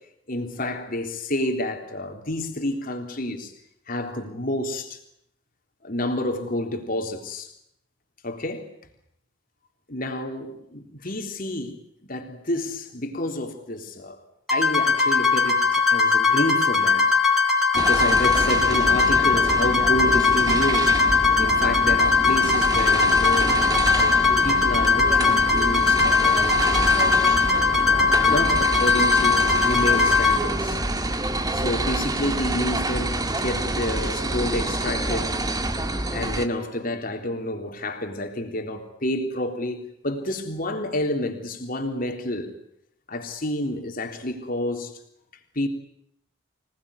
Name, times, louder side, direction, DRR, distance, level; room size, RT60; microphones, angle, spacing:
voice 1, 0.3-3.5 3.9-5.0 5.8-7.5 8.2-8.7 9.9-14.2 14.5-17.2 17.7-21.0 21.4-23.6 24.4-26.8 28.2-30.8 31.5-35.4 36.1-42.5 43.1-44.9 45.6-45.7, left 1 dB, 45° left, 3.6 m, -29 dB
sound 1, 14.5-30.4, left 4 dB, ahead, 5.5 m, -20 dB
sound 2, 17.7-36.5, right 2 dB, 20° right, 1.6 m, -27 dB
26.0 x 19.5 x 9.8 m
head